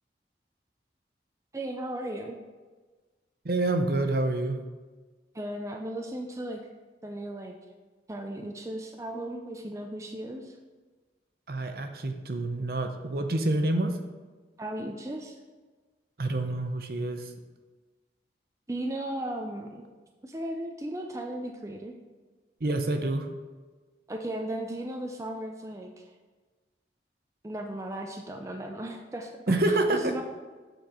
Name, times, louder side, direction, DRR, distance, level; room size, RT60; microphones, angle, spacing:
voice 1, 1.5-2.4 5.3-6.6 7.0-7.6 8.1-10.6 14.6-15.4 18.7-19.9 20.2-21.9 24.1-26.1 27.4-29.6 29.9-30.2, right 1 dB, 15° right, 3 dB, 0.5 m, -36 dB
voice 2, 3.4-4.6 11.5-13.9 16.2-17.3 22.6-23.3 29.5-30.1, right 2 dB, 55° right, 6 dB, 0.7 m, -27 dB
7.9 x 4.5 x 5.0 m, 1.3 s
head